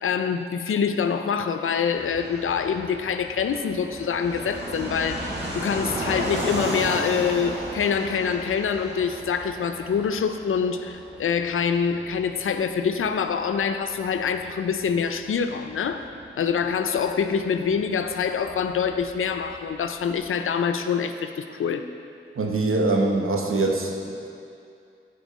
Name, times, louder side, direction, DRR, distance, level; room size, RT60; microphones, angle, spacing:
voice 1, 0.0-5.2 5.5-16.0 16.3-21.9, left 6 dB, 80° left, 8 dB, 0.4 m, -25 dB
Fixed-wing aircraft airplane, 1.9-20.3, right 1 dB, 55° right, 1.7 m, -36 dB
voice 2, 22.4-24.3, right 2 dB, 85° right, 0 dB, 0.9 m, -23 dB
9.5 x 4.5 x 4.1 m, 2.5 s
wide cardioid pair, 90°, 21 cm